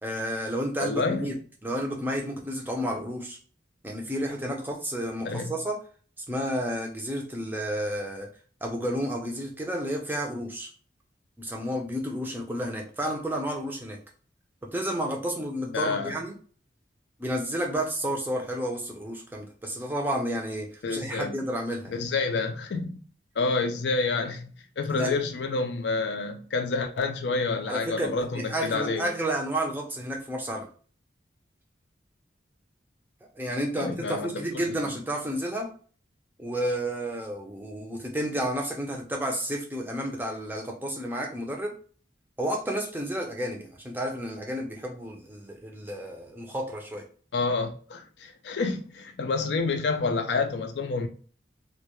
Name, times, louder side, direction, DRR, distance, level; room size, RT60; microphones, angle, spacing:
voice 1, 0.0-1.3 1.6-3.4 3.8-5.8 6.3-8.3 8.6-10.7 11.4-14.0 14.7-16.3 17.2-22.0 25.0-25.1 27.7-30.6 33.4-35.7 36.4-41.7 42.4-47.0, equal, 10° right, 0.4 m, -31 dB
voice 2, 0.8-1.4 5.2-5.6 15.7-16.2 20.8-21.4 21.9-23.0 23.4-24.5 24.8-29.1 33.8-34.8 47.3-51.1, left 3 dB, 75° left, 0.4 m, -28 dB
2.2 x 2.2 x 2.9 m
head